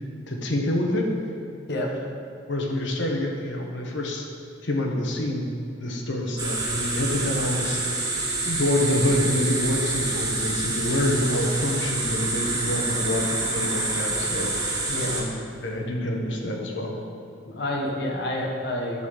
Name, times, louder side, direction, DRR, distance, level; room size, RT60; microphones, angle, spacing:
voice 1, 0.3-1.1 2.5-4.2 4.6-5.5 5.8-7.8 8.4-15.3 15.6-16.9, left 1 dB, 90° left, 1 dB, 1.3 m, -27 dB
sound 1, 6.4-15.2, right 2 dB, 20° right, 1.5 m, -27 dB
voice 2, 17.5-19.1, left 1 dB, 65° left, 0 dB, 1.3 m, -28 dB
11.0 x 4.2 x 6.5 m, 2.5 s
head